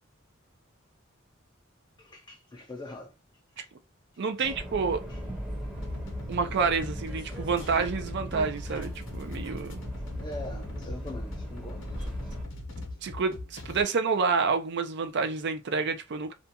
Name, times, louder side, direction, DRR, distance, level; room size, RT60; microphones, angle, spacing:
voice 1, 2.0-3.1 3.6-3.7 4.4-4.5 5.1-5.2 10.2-12.3, left 1 dB, 20° left, 0.4 m, -43 dB
voice 2, 4.2-5.0 6.3-9.8 13.0-16.3, right 5 dB, 60° right, 0.5 m, -28 dB
Subway metro underground, 4.4-12.4, equal, 5° right, 0.7 m, -38 dB
sound 1, 5.8-13.8, left 2 dB, 65° left, 0.7 m, -41 dB
2.5 x 2.2 x 2.8 m
head